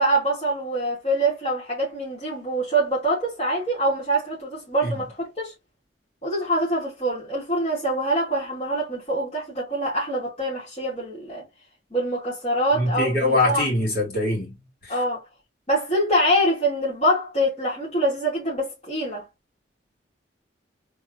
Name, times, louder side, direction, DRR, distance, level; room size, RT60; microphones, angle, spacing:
voice 1, 0.0-5.5 6.2-11.4 11.9-13.7 14.9-15.2 15.7-19.2, right 1 dB, 40° left, 2.7 m, -24 dB
voice 2, 12.7-14.5 14.8-14.9, left 2 dB, 55° left, 3.2 m, -23 dB
4.0 x 3.7 x 3.1 m
head